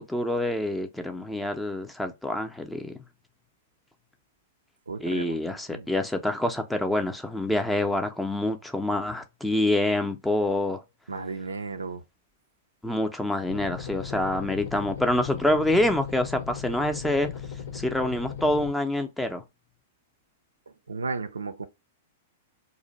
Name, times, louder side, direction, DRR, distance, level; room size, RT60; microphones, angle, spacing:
voice 1, 0.0-2.9 5.0-10.8 12.8-17.3 17.7-19.4, left 1 dB, 5° left, 0.5 m, -26 dB
voice 2, 4.9-5.4 5.7-5.9 11.1-12.0 20.7-21.7, right 4 dB, 75° right, 0.3 m, -34 dB
sound 1, 13.5-18.7, left 8 dB, 60° left, 0.6 m, -38 dB
2.5 x 2.1 x 3.9 m
figure-of-eight pair, 100°, 0 cm